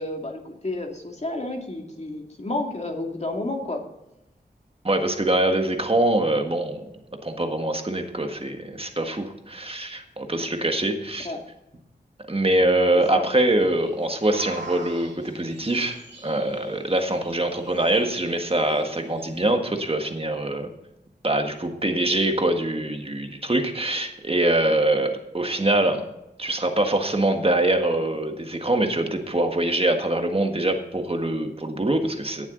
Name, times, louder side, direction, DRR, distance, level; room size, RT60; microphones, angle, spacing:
voice 1, 0.0-3.8 11.2-11.4 13.1-13.3, left 2 dB, 40° left, 1 dB, 2.4 m, -30 dB
voice 2, 4.8-6.9 7.2-11.3 12.3-20.7 21.2-26.0 26.4-32.4, right 1 dB, 35° right, 5 dB, 1.6 m, -24 dB
sound 1, 13.6-19.5, right 2 dB, 90° right, 2.3 m, -44 dB
17.5 x 7.2 x 3.9 m, 0.88 s
wide cardioid pair, 65°, 18 cm